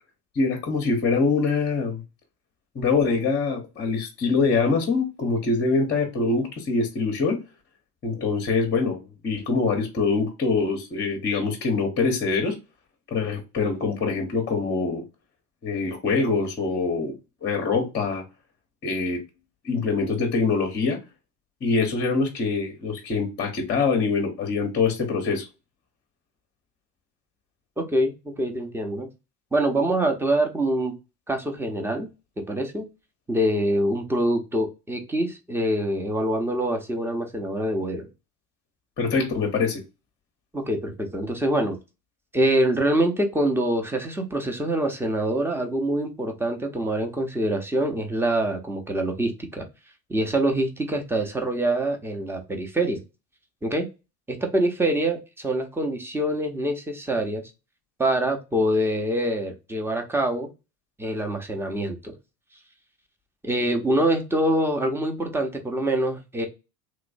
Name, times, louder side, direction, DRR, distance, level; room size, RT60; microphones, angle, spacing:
voice 1, 0.3-2.0 2.7-7.4 8.0-12.6 13.1-15.0 15.6-17.1 17.4-18.2 18.8-19.2 19.6-21.0 21.6-25.5 39.0-39.8, left 4 dB, 20° left, 0.8 m, -24 dB
voice 2, 27.8-29.1 29.5-30.9 31.3-32.1 32.5-32.8 33.3-38.1 40.5-41.8 42.3-49.6 50.1-53.0 53.6-53.9 54.3-57.4 58.0-60.5 61.0-62.1 63.4-66.5, right 1 dB, 5° right, 0.7 m, -25 dB
3.1 x 3.0 x 2.5 m
hypercardioid pair, 85°, 47 cm